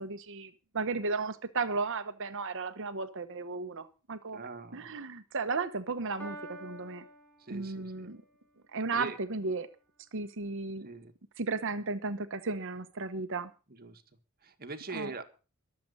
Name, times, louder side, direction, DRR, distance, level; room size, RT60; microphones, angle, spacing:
voice 1, 0.0-7.0 7.5-8.2 8.7-9.7 10.1-10.9 11.4-13.5 14.9-15.1, right 4 dB, 60° right, 11 dB, 1.0 m, -35 dB
voice 2, 4.3-4.9 7.4-8.1 8.9-9.2 10.8-11.1 13.7-14.0 14.4-15.2, right 3 dB, 45° right, 7 dB, 1.8 m, -42 dB
Piano, 6.2-8.2, right 2 dB, 10° left, 5.9 m, -47 dB
22.5 x 7.7 x 5.5 m, 0.35 s
head